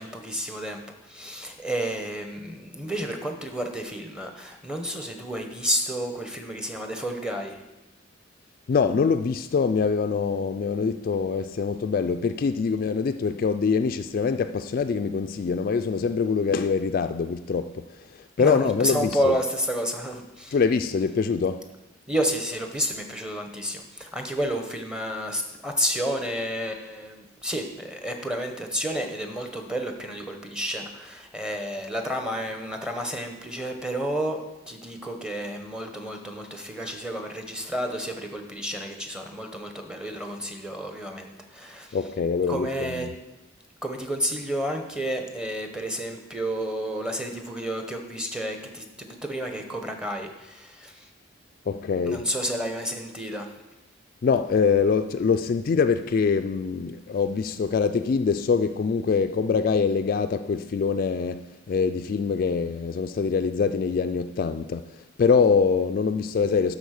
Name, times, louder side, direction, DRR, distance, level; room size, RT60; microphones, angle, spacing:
voice 1, 0.0-7.6 18.4-20.5 22.1-42.0 42.5-43.1 43.8-51.1 52.1-53.5, equal, 5° right, 0.9 m, -31 dB
voice 2, 8.7-19.4 20.5-21.6 41.9-43.1 51.7-52.3 54.2-66.8, left 5 dB, 45° left, 0.3 m, -24 dB
12.0 x 4.1 x 6.4 m
head